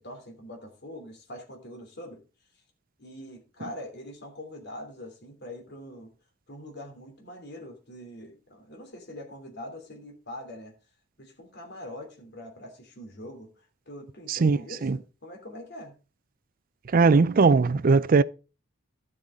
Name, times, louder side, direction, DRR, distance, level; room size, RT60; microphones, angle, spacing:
voice 1, 0.0-2.2 3.0-6.1 6.5-10.7 11.2-13.5 13.9-15.9, left 1 dB, 55° left, 3.0 m, -43 dB
voice 2, 14.3-15.0 16.9-18.2, right 4 dB, 45° right, 0.4 m, -20 dB
12.0 x 7.8 x 3.6 m
head